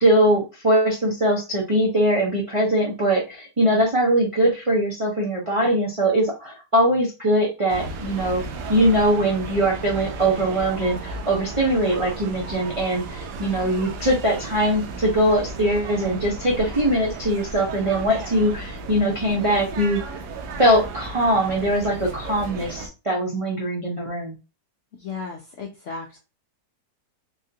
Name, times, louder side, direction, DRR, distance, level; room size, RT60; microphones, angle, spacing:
voice 1, 0.0-8.4 8.7-20.0 20.6-24.4, right 1 dB, 55° right, -4 dB, 0.3 m, -21 dB
sound 1, 7.7-22.9, right 3 dB, 75° right, 1.1 m, -34 dB
voice 2, 25.0-26.2, left 4 dB, 70° left, 0 dB, 0.7 m, -35 dB
3.5 x 2.4 x 2.6 m, 0.28 s
omnidirectional pair, 1.9 m